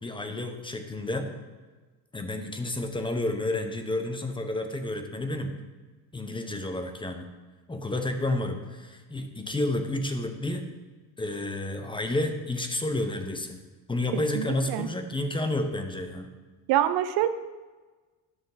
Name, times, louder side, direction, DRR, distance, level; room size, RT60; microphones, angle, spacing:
voice 1, 0.0-1.3 2.1-5.5 6.1-7.3 7.7-10.6 11.2-13.6 13.9-16.3, left 1 dB, 15° left, 6 dB, 1.0 m, -30 dB
voice 2, 14.3-14.9 16.7-17.3, right 12 dB, 75° right, 12 dB, 0.6 m, -25 dB
11.0 x 6.8 x 4.0 m, 1.3 s
cardioid pair, 105°, 37 cm